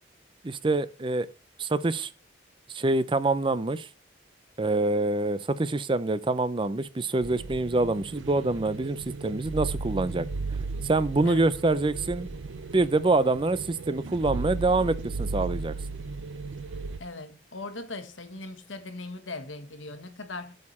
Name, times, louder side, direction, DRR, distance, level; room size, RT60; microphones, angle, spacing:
voice 1, 0.4-1.3 1.6-2.1 2.7-3.9 4.6-10.3 10.8-12.3 12.7-15.7, right 2 dB, 25° right, 0.5 m, -26 dB
sound 1, 7.2-17.0, right 4 dB, 80° right, 0.6 m, -35 dB
voice 2, 17.0-20.5, left 2 dB, 85° left, 1.5 m, -39 dB
8.5 x 6.6 x 4.3 m
head